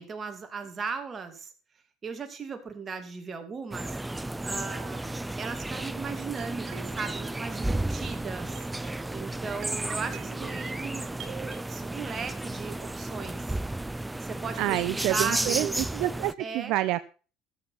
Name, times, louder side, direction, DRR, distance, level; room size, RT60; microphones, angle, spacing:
voice 1, 0.0-1.5 2.0-4.0 4.4-8.5 9.1-13.6 14.2-15.7 16.4-16.7, right 5 dB, 30° right, 6 dB, 2.5 m, -37 dB
sound 1, 3.7-16.3, right 1 dB, 10° right, 0.5 m, -33 dB
sound 2, 6.4-11.6, right 8 dB, 50° right, 1.6 m, -45 dB
voice 2, 14.6-17.1, right 16 dB, 70° right, 12 dB, 0.6 m, -28 dB
14.0 x 7.1 x 5.9 m, 0.37 s
supercardioid pair, 110°, 0 cm